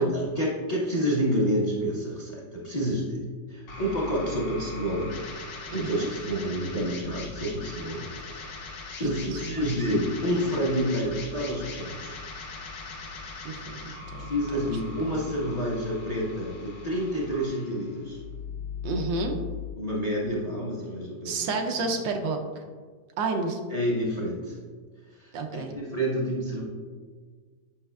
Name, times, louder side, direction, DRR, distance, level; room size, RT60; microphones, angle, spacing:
voice 1, 0.0-3.2 3.5-5.1 5.7-8.0 8.3-8.6 9.0-12.1 14.2-18.2 19.8-21.6 23.7-24.6 25.1-26.6, equal, 25° left, -4 dB, 0.9 m, -29 dB
sound 1, 3.7-19.7, left 5 dB, 80° left, 1.7 m, -40 dB
voice 2, 5.7-6.1 9.3-9.4 13.4-14.6 15.0-15.1 18.8-19.3 21.2-22.6 23.2-23.6 25.3-25.7, right 3 dB, 85° right, 3 dB, 1.4 m, -30 dB
8.7 x 5.6 x 2.3 m, 1.5 s
omnidirectional pair, 2.0 m